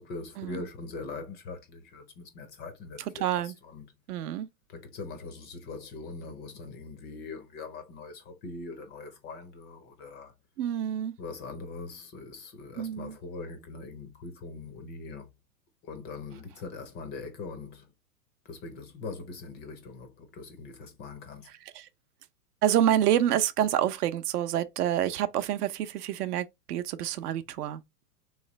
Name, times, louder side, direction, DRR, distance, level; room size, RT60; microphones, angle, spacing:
voice 1, 0.0-3.8 4.7-10.3 11.2-15.3 15.8-17.9 18.4-21.5, left 3 dB, 20° left, 0.4 m, -42 dB
voice 2, 3.2-3.5 4.1-4.5 10.6-11.2 12.8-13.1 21.8-21.9 22.6-27.8, right 11 dB, 65° right, 0.7 m, -27 dB
3.2 x 3.1 x 3.0 m
hypercardioid pair, 120°, 49 cm